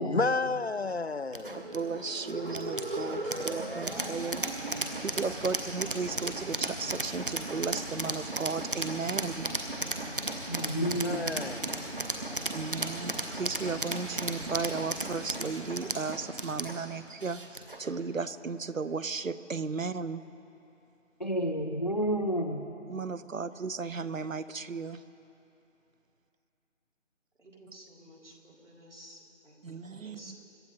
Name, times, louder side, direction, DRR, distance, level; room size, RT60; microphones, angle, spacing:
voice 1, 0.0-1.7 11.0-11.8, left 4 dB, 55° left, 0.5 m, -31 dB
sound 1, 1.3-17.9, right 2 dB, 45° right, 1.1 m, -35 dB
voice 2, 1.5-4.4 4.8-9.5 10.7-10.9 12.5-20.2 22.9-25.0 29.6-30.4, right 4 dB, 80° right, 0.8 m, -35 dB
voice 3, 10.5-11.3 21.2-22.7, equal, 35° left, 0.8 m, -30 dB
voice 4, 27.4-30.3, right 1 dB, 65° right, 3.9 m, -53 dB
26.0 x 13.0 x 4.0 m
figure-of-eight pair, 170°, 39 cm